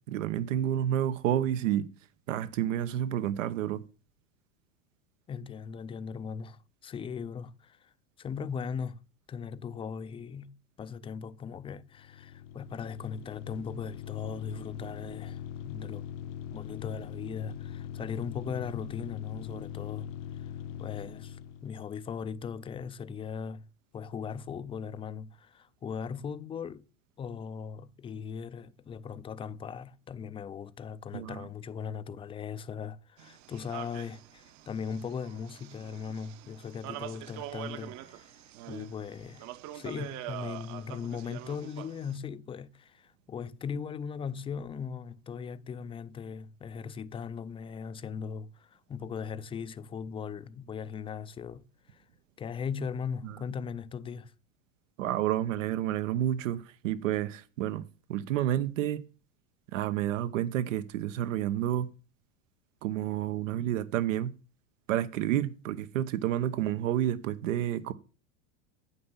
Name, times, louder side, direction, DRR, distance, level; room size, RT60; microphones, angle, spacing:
voice 1, 0.1-1.9 2.3-3.8 31.1-31.5 53.2-53.4 55.0-57.8 58.1-59.0 59.7-61.9 62.8-64.3 64.9-67.9, right 11 dB, 80° right, 1.1 m, -30 dB
voice 2, 5.3-9.0 9.3-16.1 16.5-20.1 20.4-20.5 20.8-23.7 23.9-26.9 27.2-38.4 38.7-39.5 39.7-52.0 52.4-54.3, left 6 dB, 15° left, 0.5 m, -39 dB
sound 1, 11.9-21.8, left 9 dB, 70° left, 1.1 m, -41 dB
sound 2, 33.2-42.2, right 14 dB, 50° right, 1.1 m, -44 dB
9.6 x 6.9 x 7.1 m
supercardioid pair, 125°, 38 cm